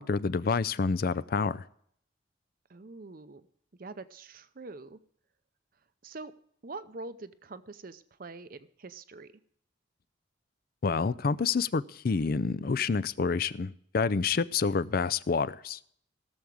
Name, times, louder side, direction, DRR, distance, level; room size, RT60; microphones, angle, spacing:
voice 1, 0.0-1.6 10.8-15.8, left 5 dB, 50° left, 17 dB, 0.4 m, -28 dB
voice 2, 2.7-3.5 3.8-5.0 6.0-6.3 6.6-9.3, right 3 dB, 45° right, 12 dB, 0.7 m, -44 dB
18.0 x 7.2 x 4.8 m, 0.65 s
head